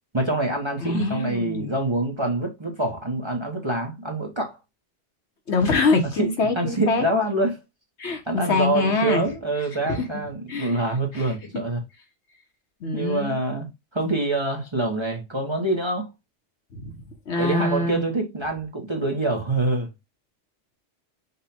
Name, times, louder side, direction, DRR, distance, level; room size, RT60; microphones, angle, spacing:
voice 1, 0.1-4.6 6.2-6.3 6.6-7.6 8.3-11.8 12.9-13.7 13.9-16.1 17.4-19.9, right 2 dB, 25° right, 0.9 m, -25 dB
voice 2, 0.8-1.7 5.5-7.0 8.0-9.2 9.9-10.2 10.5-11.3 12.8-13.4 16.7-16.9 17.3-18.0, left 3 dB, 70° left, 1.3 m, -24 dB
5.3 x 2.4 x 4.2 m
omnidirectional pair, 1.2 m